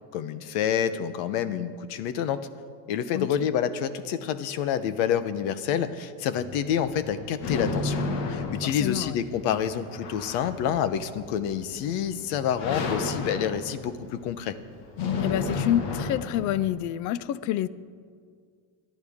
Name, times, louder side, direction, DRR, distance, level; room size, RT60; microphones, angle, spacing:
voice 1, 0.1-2.5 2.9-8.0 8.3-14.6, left 9 dB, 85° left, 13 dB, 1.0 m, -28 dB
sound 1, 6.3-16.7, left 3 dB, 65° left, 1.7 m, -33 dB
voice 2, 8.6-9.2 15.2-17.7, left 12 dB, 45° left, 18 dB, 0.4 m, -28 dB
26.0 x 10.5 x 3.6 m, 2.1 s
cardioid pair, 155°, 43 cm